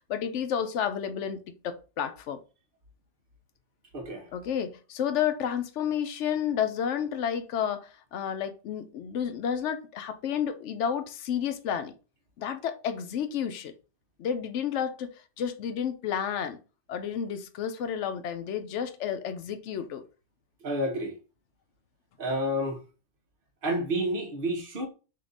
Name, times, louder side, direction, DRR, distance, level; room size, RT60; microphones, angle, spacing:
voice 1, 0.1-2.4 4.3-11.9 12.4-13.7 14.2-16.6 16.9-20.0, left 8 dB, 75° left, 0.9 m, -31 dB
voice 2, 3.9-4.3 20.6-21.1 22.2-22.8 23.6-24.9, equal, 50° right, 1.0 m, -29 dB
3.7 x 2.8 x 3.8 m
omnidirectional pair, 1.2 m